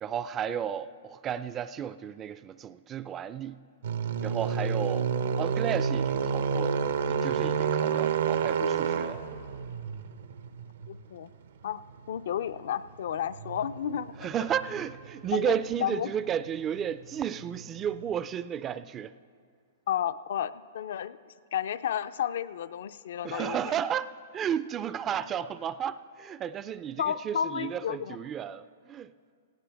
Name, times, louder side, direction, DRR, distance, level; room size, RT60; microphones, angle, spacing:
voice 1, 0.0-3.6 4.2-5.1 5.4-6.8 7.1-9.2 14.2-19.1 23.2-29.1, right 9 dB, 20° right, 0.3 m, -33 dB
sound 1, 3.8-18.1, right 6 dB, 80° right, 0.8 m, -31 dB
voice 2, 10.9-11.3 11.6-11.8 12.1-14.3 15.3-15.5 15.8-16.1 19.9-21.2 21.5-23.7 27.0-28.2, left 9 dB, 70° left, 0.4 m, -32 dB
18.5 x 16.0 x 3.4 m
hypercardioid pair, 145°, 0 cm